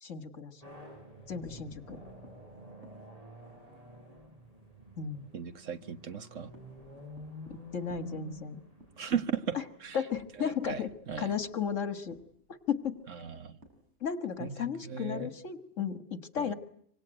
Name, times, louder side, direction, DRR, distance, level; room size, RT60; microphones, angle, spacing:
voice 1, 0.0-0.6 1.3-2.0 5.0-5.3 7.5-8.6 9.5-9.6 9.9-10.9 11.2-12.2 12.7-13.0 14.0-16.5, left 7 dB, 80° left, 2.0 m, -34 dB
sound 1, 0.6-10.0, left 1 dB, 30° right, 7.1 m, -49 dB
sound 2, 1.1-4.3 4.7-4.8 5.1-5.2 5.6-14.4, equal, 60° right, 6.7 m, -57 dB
voice 2, 5.3-6.5 9.0-10.0 10.4-11.3 13.1-13.6 14.4-15.3 16.4-16.5, right 7 dB, 75° right, 1.7 m, -37 dB
25.5 x 25.5 x 9.0 m
omnidirectional pair, 1.3 m